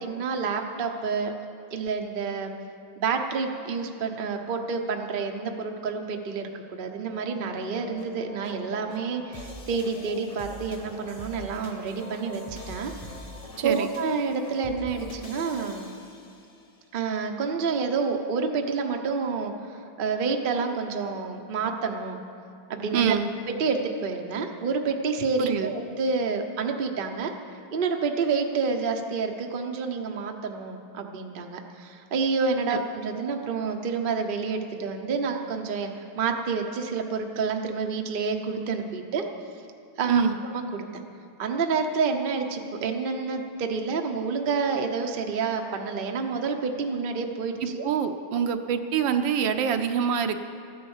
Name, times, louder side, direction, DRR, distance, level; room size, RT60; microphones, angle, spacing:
voice 1, 0.0-1.3 1.7-2.5 3.0-12.9 13.6-15.9 16.9-19.5 20.0-22.2 22.7-23.1 23.5-27.3 27.7-35.9 36.2-39.3 40.0-41.0 41.4-47.8, right 5 dB, 50° right, 3 dB, 0.6 m, -28 dB
sound 1, 7.5-16.7, left 1 dB, 30° left, 0.7 m, -43 dB
voice 2, 13.6-13.9 22.9-23.3 25.4-25.7 32.7-32.8 40.1-40.4 47.6-50.4, right 7 dB, 70° right, 7 dB, 1.3 m, -25 dB
14.5 x 10.0 x 7.2 m, 2.4 s
omnidirectional pair, 2.3 m